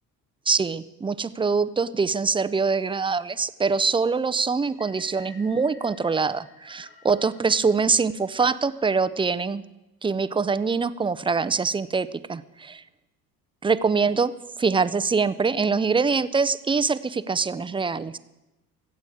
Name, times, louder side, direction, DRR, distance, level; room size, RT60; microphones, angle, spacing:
voice 1, 0.5-9.6 10.0-12.8 13.6-14.3 14.6-18.2, right 4 dB, 10° right, 14 dB, 0.4 m, -24 dB
sound 1, 4.7-9.0, left 4 dB, 65° left, 3.0 m, -53 dB
23.0 x 8.3 x 4.9 m, 1.0 s
hypercardioid pair, 65°, 46 cm